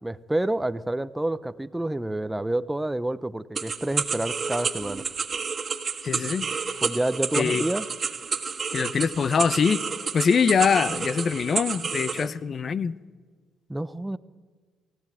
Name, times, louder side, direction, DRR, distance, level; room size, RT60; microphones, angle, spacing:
voice 1, 0.0-5.0 6.8-7.9 12.2-12.3 13.7-14.2, right 1 dB, 10° right, 0.6 m, -28 dB
sound 1, 3.5-12.3, right 5 dB, 40° right, 1.7 m, -30 dB
voice 2, 6.0-6.5 7.3-7.6 8.7-9.8 10.1-13.0, left 6 dB, 50° left, 0.7 m, -23 dB
22.0 x 15.5 x 9.1 m
cardioid pair, 90°, 0 cm